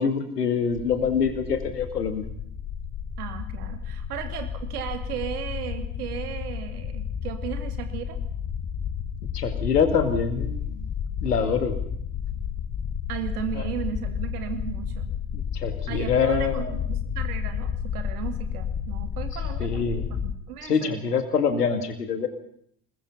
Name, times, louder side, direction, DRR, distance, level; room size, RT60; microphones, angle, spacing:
voice 1, 0.0-2.2 9.3-10.9 11.2-11.7 13.6-13.7 15.3-16.8 19.6-20.0 20.6-22.3, left 6 dB, 80° left, 9 dB, 2.4 m, -25 dB
sound 1, 0.8-20.4, left 8 dB, 35° left, 1.6 m, -32 dB
voice 2, 3.2-8.2 13.1-15.1 15.9-19.8 20.2-21.0, right 9 dB, 70° right, 8 dB, 2.6 m, -35 dB
26.5 x 21.0 x 5.7 m, 0.67 s
figure-of-eight pair, 55°, 46 cm